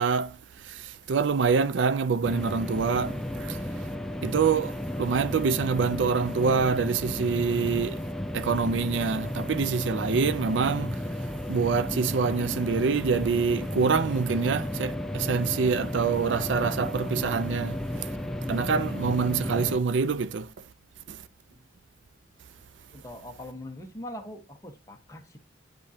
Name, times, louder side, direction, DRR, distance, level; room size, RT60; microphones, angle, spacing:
voice 1, 0.0-3.6 4.2-8.0 8.3-11.0 11.5-18.1 18.5-20.5 21.1-21.2, right 5 dB, 80° right, 0.5 m, -26 dB
sound 1, 2.2-19.8, left 1 dB, 5° left, 0.5 m, -33 dB
voice 2, 22.9-25.4, left 1 dB, 20° left, 1.2 m, -42 dB
10.0 x 3.7 x 2.8 m
head